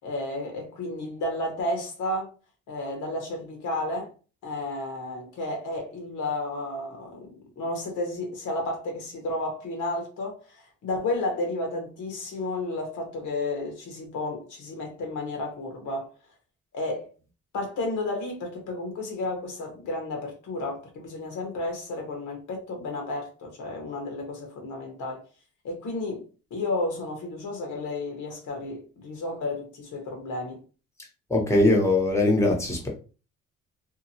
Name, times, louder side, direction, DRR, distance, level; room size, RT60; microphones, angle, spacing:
voice 1, 0.0-2.3 2.7-4.1 4.4-16.1 16.7-17.1 17.5-25.2 25.6-30.6, left 2 dB, 75° left, 1.1 m, -32 dB
voice 2, 31.3-32.9, left 2 dB, 10° left, 0.9 m, -21 dB
2.9 x 2.3 x 2.7 m
cardioid pair, 90°, 30 cm